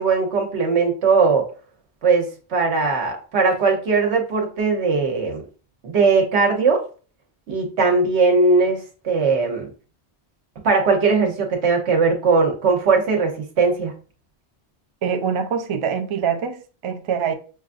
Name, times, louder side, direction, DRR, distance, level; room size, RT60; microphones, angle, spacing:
voice 1, 0.0-1.5 2.0-5.4 5.8-6.8 7.5-9.7 10.6-13.9, right 4 dB, 85° right, 1.2 m, -19 dB
voice 2, 15.0-17.3, right 7 dB, 50° right, 0.3 m, -24 dB
6.2 x 2.4 x 2.5 m
omnidirectional pair, 1.1 m